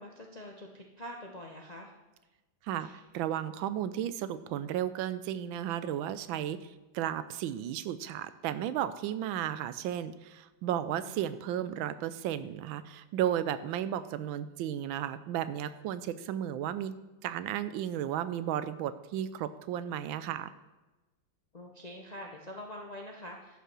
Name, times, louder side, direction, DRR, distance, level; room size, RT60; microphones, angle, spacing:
voice 1, 0.0-1.9 2.8-3.0 11.0-11.2 21.5-23.6, left 1 dB, 45° left, 1 dB, 0.5 m, -45 dB
voice 2, 2.6-16.9 17.2-20.5, right 11 dB, 85° right, 14 dB, 1.3 m, -34 dB
11.0 x 5.5 x 6.0 m, 1.1 s
omnidirectional pair, 2.1 m